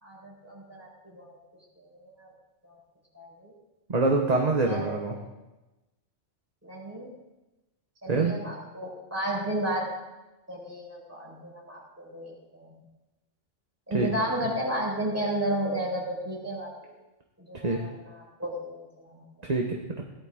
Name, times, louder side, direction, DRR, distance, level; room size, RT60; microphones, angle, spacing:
voice 1, 0.0-1.4 1.8-2.3 2.6-2.8 3.1-3.5 4.6-4.9 6.6-7.1 8.0-9.9 10.5-12.8 13.9-16.9 17.4-19.2, right 1 dB, 10° right, -5 dB, 4.8 m, -33 dB
voice 2, 3.9-5.2 8.1-8.4 13.9-14.2 17.6-17.8 19.4-20.0, right 3 dB, 35° right, 1 dB, 1.2 m, -25 dB
18.0 x 11.5 x 3.7 m, 1.0 s
omnidirectional pair, 1.3 m